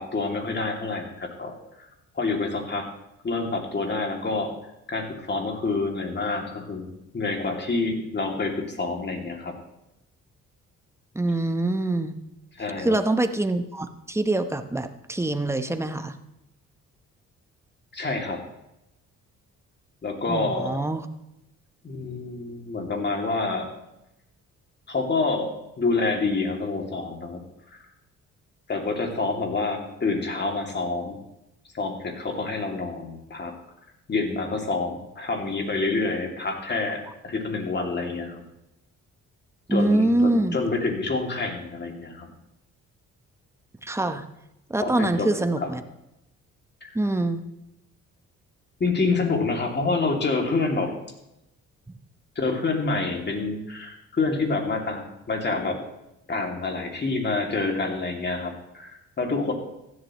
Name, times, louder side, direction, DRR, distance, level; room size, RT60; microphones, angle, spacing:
voice 1, 0.0-1.5 2.1-2.9 3.2-4.5 4.9-9.5 12.6-13.0 17.9-18.4 20.0-20.8 21.8-23.7 24.9-27.4 27.7-27.8 28.7-31.2 31.7-33.5 34.1-38.4 39.7-42.3 44.8-45.3 45.6-45.7 46.8-46.9 48.8-50.9 52.4-55.8 56.3-59.5, left 3 dB, 35° left, 2 dB, 2.6 m, -27 dB
voice 2, 11.1-12.2 12.8-16.2 20.3-21.1 39.7-40.6 43.8-44.3 44.7-45.8 46.9-47.4, right 2 dB, 10° right, 8 dB, 1.0 m, -24 dB
15.5 x 11.5 x 3.1 m, 0.87 s
cardioid pair, 90°, 30 cm